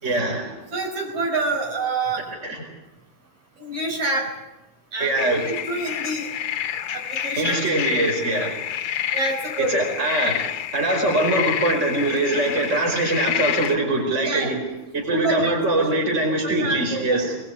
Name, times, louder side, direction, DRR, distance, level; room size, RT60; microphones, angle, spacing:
voice 1, 0.0-0.6 2.4-2.6 5.0-5.5 7.4-8.6 9.6-10.5 10.7-14.6 14.9-17.4, right 2 dB, 20° right, 1 dB, 5.0 m, -23 dB
voice 2, 0.7-2.2 3.6-4.3 4.9-5.2 5.4-6.3 6.9-7.6 9.1-9.8 14.2-14.5 15.1-15.9 16.4-17.2, right 2 dB, 60° right, 0 dB, 6.7 m, -27 dB
sound 1, 5.2-13.8, left 10 dB, 60° left, 1.7 m, -28 dB
21.5 x 21.5 x 8.3 m, 0.98 s
omnidirectional pair, 3.6 m